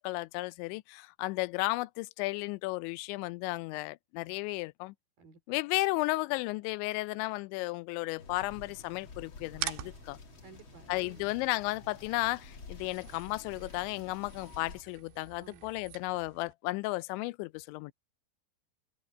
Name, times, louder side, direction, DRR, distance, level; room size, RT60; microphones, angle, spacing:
voice 1, 0.0-4.9 5.5-10.2 10.9-17.9, left 21 dB, 85° left, 2.9 m, -34 dB
sound 1, 8.2-14.8, left 4 dB, 45° left, 1.8 m, -50 dB
sound 2, 9.5-16.5, right 14 dB, 75° right, 3.2 m, -46 dB
voice 2, 10.4-11.3 15.4-15.7, right 3 dB, 55° right, 4.9 m, -54 dB
open air
omnidirectional pair, 5.2 m